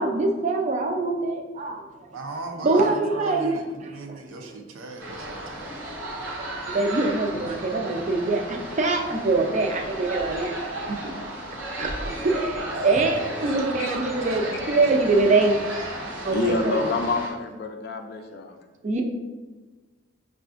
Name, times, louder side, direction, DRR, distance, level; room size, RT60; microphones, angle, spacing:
voice 1, 0.0-1.9 2.6-4.2 6.7-10.6 10.8-15.5 15.8-16.9 18.8-19.0, right 3 dB, 35° right, 3 dB, 0.4 m, -24 dB
voice 2, 2.1-5.9 12.7-13.7 14.0-14.7, right 2 dB, 90° right, 3 dB, 0.5 m, -38 dB
sound 1, 5.0-17.3, right 1 dB, 65° right, 0.9 m, -34 dB
voice 3, 16.3-18.6, left 3 dB, 55° left, 6 dB, 0.3 m, -27 dB
5.6 x 2.4 x 2.4 m, 1.2 s
head